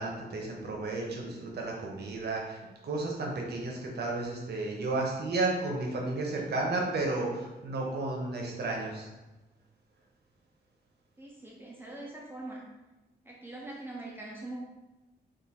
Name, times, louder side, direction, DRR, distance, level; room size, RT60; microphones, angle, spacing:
voice 1, 0.0-9.1, right 2 dB, 65° right, -1 dB, 0.9 m, -33 dB
voice 2, 11.2-12.6 13.2-14.6, right 2 dB, 10° right, -4 dB, 0.5 m, -42 dB
3.8 x 2.5 x 4.2 m, 1.1 s
wide cardioid pair, 165°, 18 cm